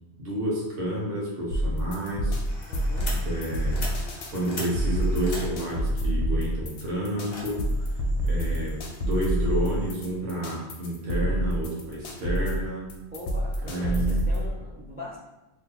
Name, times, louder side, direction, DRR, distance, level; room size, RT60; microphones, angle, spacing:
voice 1, 0.2-2.3 2.7-3.9 4.3-7.9 8.2-12.9 13.7-14.2, right 1 dB, 65° right, -4 dB, 1.1 m, -30 dB
sound 1, 1.5-14.5, equal, 85° left, 1.0 m, -27 dB
sound 2, 2.4-9.9, left 1 dB, 45° left, 0.9 m, -41 dB
voice 2, 2.7-3.2 8.2-8.7 13.1-15.2, left 1 dB, 15° right, -5 dB, 0.4 m, -41 dB
2.9 x 2.8 x 3.8 m, 0.99 s
omnidirectional pair, 1.1 m